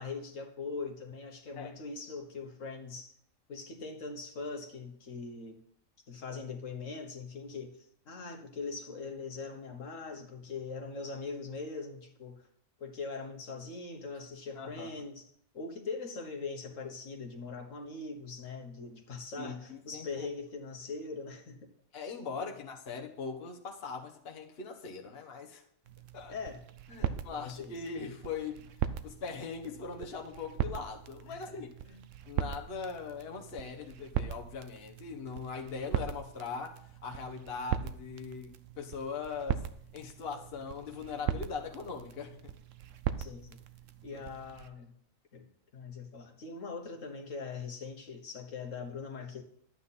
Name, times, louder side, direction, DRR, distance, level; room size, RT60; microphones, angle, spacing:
voice 1, 0.0-3.1 3.5-5.6 6.1-12.4 12.8-15.3 15.5-21.7 22.4-22.5 26.3-26.6 27.0-27.8 31.3-32.0 43.2-43.6 44.0-44.9 45.3-45.5 45.7-49.4, left 4 dB, 70° left, 3 dB, 1.7 m, -41 dB
voice 2, 14.5-14.9 19.4-20.3 21.9-25.6 26.1-26.3 26.9-28.6 29.0-31.7 32.3-39.6 39.9-42.5 44.1-44.3, left 5 dB, 50° left, 2 dB, 1.3 m, -40 dB
sound 1, 25.9-44.7, right 9 dB, 70° right, 1.0 m, -39 dB
11.5 x 8.9 x 4.2 m, 0.66 s
omnidirectional pair, 1.4 m